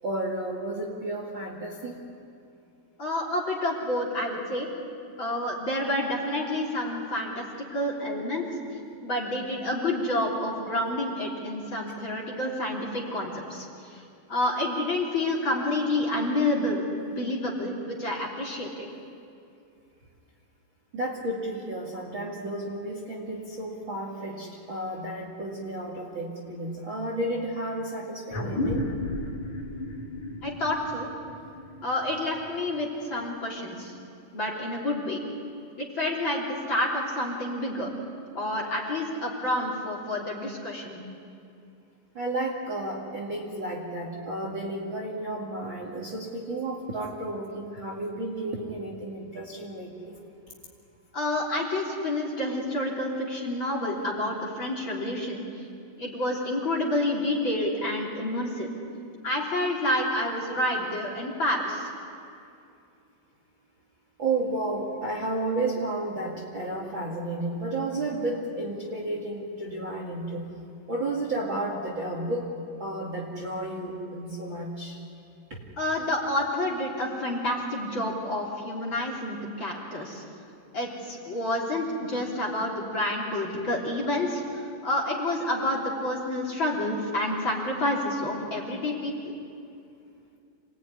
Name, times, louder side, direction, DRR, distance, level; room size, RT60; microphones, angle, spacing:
voice 1, 0.0-2.0 20.9-28.9 42.1-50.2 64.2-70.5 70.9-72.5 72.8-75.0 75.5-75.6, right 2 dB, 35° right, -2 dB, 2.3 m, -32 dB
voice 2, 3.0-4.7 5.2-8.5 9.0-14.0 14.3-18.9 30.4-31.1 31.8-33.9 34.3-35.2 35.8-37.9 38.3-41.0 51.1-55.4 56.0-58.7 59.2-61.9 75.8-80.2 80.7-89.1, left 1 dB, 30° left, -2 dB, 3.8 m, -29 dB
sound 1, 28.3-33.2, left 1 dB, 50° left, 3.4 m, -34 dB
27.5 x 19.0 x 9.8 m, 2.5 s
omnidirectional pair, 4.7 m